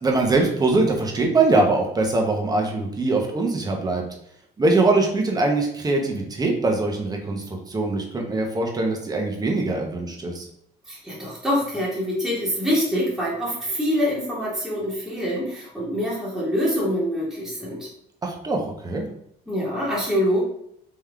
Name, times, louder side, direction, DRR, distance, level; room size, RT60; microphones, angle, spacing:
voice 1, 0.0-4.0 4.6-10.5 18.2-19.1, right 2 dB, 20° right, 2 dB, 0.9 m, -22 dB
voice 2, 10.9-17.9 19.5-20.4, equal, ahead, -7 dB, 1.4 m, -25 dB
3.7 x 3.1 x 3.5 m, 0.72 s
cardioid pair, 110°, 17 cm